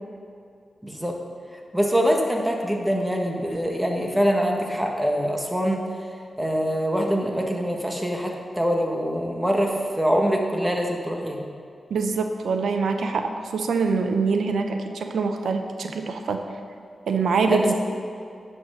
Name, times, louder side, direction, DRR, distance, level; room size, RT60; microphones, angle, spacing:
voice 1, 0.8-1.1 1.7-5.8 6.4-11.4 17.5-17.7, equal, 10° right, 1 dB, 1.5 m, -24 dB
voice 2, 11.9-16.4 17.1-17.7, right 4 dB, 85° right, 5 dB, 0.6 m, -24 dB
9.6 x 5.6 x 6.4 m, 2.5 s
cardioid pair, 65°, 0 cm